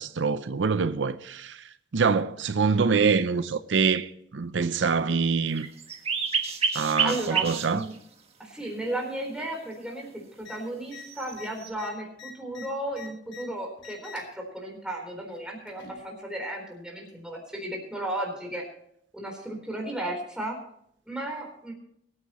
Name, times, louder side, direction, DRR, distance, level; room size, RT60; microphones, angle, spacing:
voice 1, 0.0-1.6 1.9-5.7 6.7-7.8, right 5 dB, 85° right, 0.6 m, -25 dB
sound 1, 5.6-8.0 8.7-8.8 11.0-11.7, right 6 dB, 35° right, 1.5 m, -29 dB
voice 2, 7.0-7.9 8.4-18.7 19.1-20.6 21.1-21.7, right 1 dB, 5° right, 4.0 m, -34 dB
sound 2, 10.4-10.6 10.9-11.0 11.3-13.4 13.8-14.3 15.3-16.0 17.1-17.2, left 6 dB, 90° left, 3.3 m, -45 dB
23.0 x 9.2 x 3.1 m
head